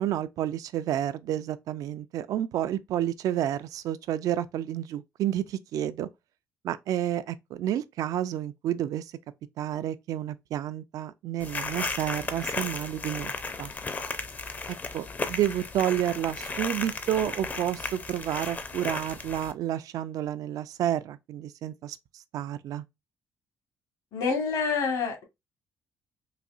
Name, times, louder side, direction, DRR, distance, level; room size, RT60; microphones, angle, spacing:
voice 1, 0.0-6.1 6.6-9.1 9.6-13.3 13.6-13.7 14.9-22.8, right 11 dB, 65° right, 0.4 m, -30 dB
sound 1, 11.4-19.5, left 4 dB, 25° left, 0.5 m, -35 dB
voice 2, 24.1-25.2, left 5 dB, 75° left, 1.4 m, -27 dB
4.0 x 2.6 x 2.4 m
cardioid pair, 110°, 6 cm